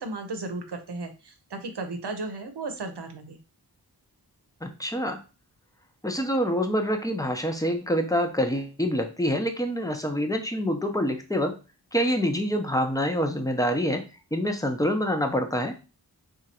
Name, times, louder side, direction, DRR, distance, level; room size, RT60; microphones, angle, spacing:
voice 1, 0.0-3.4, right 3 dB, 80° right, 6 dB, 0.8 m, -35 dB
voice 2, 4.6-5.2 6.0-11.6 11.9-14.0 14.3-15.7, equal, 10° left, 5 dB, 0.7 m, -26 dB
2.8 x 2.5 x 4.2 m, 0.31 s
wide cardioid pair, 55°, 40 cm